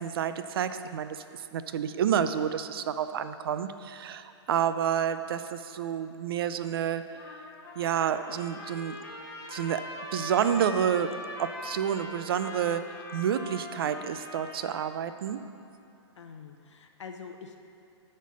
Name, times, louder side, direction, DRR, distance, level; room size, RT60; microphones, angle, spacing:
voice 1, 0.0-7.0 7.8-9.0 9.5-9.9 10.1-15.4, right 8 dB, 55° right, 11 dB, 0.5 m, -29 dB
Trumpet, 7.1-15.0, left 2 dB, 25° left, 1.2 m, -42 dB
voice 2, 16.2-17.6, left 6 dB, 85° left, 4 dB, 0.7 m, -45 dB
9.1 x 4.4 x 6.2 m, 2.8 s
hypercardioid pair, 155°, 15 cm